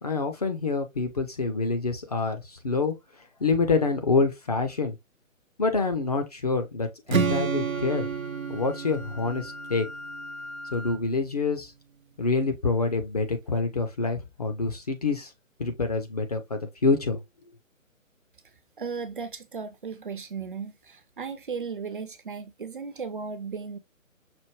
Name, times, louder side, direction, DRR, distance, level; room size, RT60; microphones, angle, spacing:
voice 1, 0.0-2.9 3.4-5.0 5.6-8.1 8.5-9.9 10.7-11.7 12.2-15.3 15.6-17.2, left 3 dB, 30° left, 0.5 m, -26 dB
Strum, 7.1-11.2, right 6 dB, 80° right, 0.8 m, -31 dB
Wind instrument woodwind instrument, 7.7-11.1, left 2 dB, 55° left, 0.9 m, -42 dB
voice 2, 18.8-23.8, right 5 dB, 40° right, 0.5 m, -36 dB
5.8 x 2.1 x 3.1 m
figure-of-eight pair, 145°, 41 cm